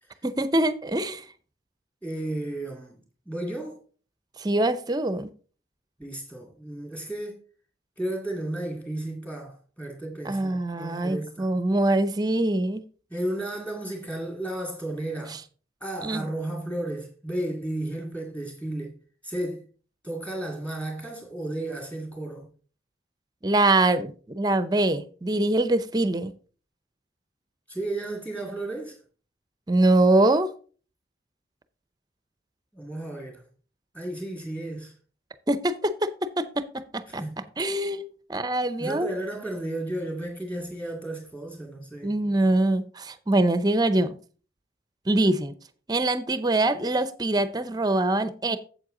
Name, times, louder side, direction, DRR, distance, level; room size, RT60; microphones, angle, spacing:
voice 1, 0.2-1.2 4.4-5.3 10.3-12.8 16.0-16.3 23.4-26.3 29.7-30.5 35.5-37.2 37.6-38.0 38.3-39.1 42.0-44.2 45.1-45.5 45.9-48.6, right 2 dB, 20° right, 0.6 m, -24 dB
voice 2, 2.0-3.8 6.0-7.4 8.0-11.5 13.1-15.4 15.8-18.9 19.2-19.6 20.0-22.5 27.7-29.0 32.7-33.4 33.9-34.9 37.1-37.4 38.8-42.1, right 1 dB, 10° left, 2.3 m, -33 dB
7.8 x 7.8 x 3.8 m
head